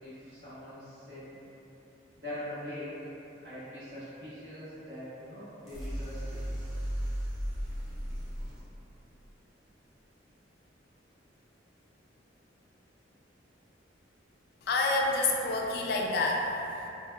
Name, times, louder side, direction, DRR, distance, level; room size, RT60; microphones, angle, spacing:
voice 1, 0.0-1.4 2.1-3.0 3.4-6.4, left 1 dB, 65° right, -14 dB, 1.5 m, -42 dB
sound 1, 5.6-8.6, equal, ahead, 0.7 m, -35 dB
voice 2, 14.6-16.9, left 2 dB, 55° left, -1 dB, 0.3 m, -28 dB
3.4 x 2.2 x 2.2 m, 2.9 s
head